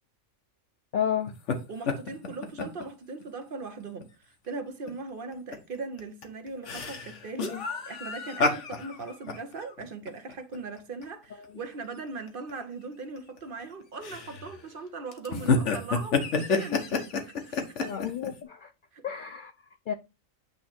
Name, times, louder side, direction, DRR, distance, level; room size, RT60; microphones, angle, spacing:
voice 1, 0.9-1.3 7.5-7.6 17.8-18.7 19.0-19.5 19.9-20.0, left 9 dB, 85° left, 0.4 m, -31 dB
sound 1, 1.3-1.6 1.9-2.8 3.2-3.3 3.8-4.0 4.9-5.0 5.3-5.6 6.0-11.0 11.4-11.5 12.3-12.5 13.2-13.6 14.0-14.6 15.1-18.3, left 4 dB, 60° left, 1.3 m, -29 dB
voice 2, 1.7-18.0 18.9-19.0, right 3 dB, 45° right, 0.9 m, -39 dB
8.5 x 3.1 x 4.3 m
omnidirectional pair, 1.4 m